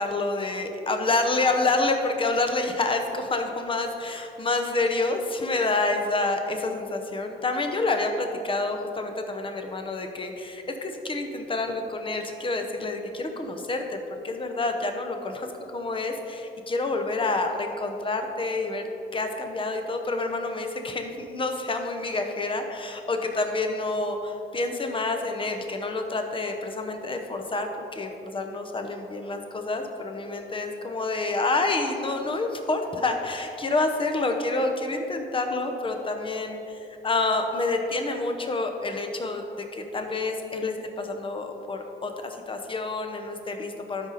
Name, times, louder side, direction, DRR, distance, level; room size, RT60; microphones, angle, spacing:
voice 1, 0.0-18.8 19.1-44.1, left 2 dB, 25° left, 5 dB, 0.9 m, -28 dB
12.0 x 5.0 x 4.1 m, 2.9 s
cardioid pair, 90°, 20 cm